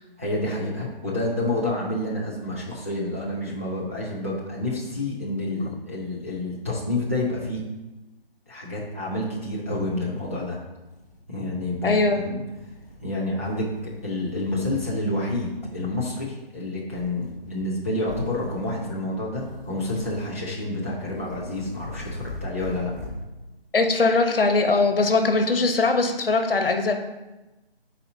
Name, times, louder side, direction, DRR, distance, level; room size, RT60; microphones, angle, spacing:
voice 1, 0.2-7.6 8.5-10.6 11.3-12.4 13.0-13.7 14.0-22.9, left 1 dB, 15° right, -7 dB, 0.5 m, -29 dB
sound 1, 9.6-9.7 10.1-11.2 11.6-12.0 12.5-13.1 13.4-15.0 15.3-15.8 16.9-17.7 18.0-19.0 19.3-20.5 20.9-23.3, left 1 dB, 20° left, 0.7 m, -41 dB
voice 2, 11.8-12.2 23.7-26.9, left 3 dB, 65° left, 5 dB, 1.0 m, -21 dB
9.2 x 4.1 x 2.7 m, 1.1 s
figure-of-eight pair, 160°, 30 cm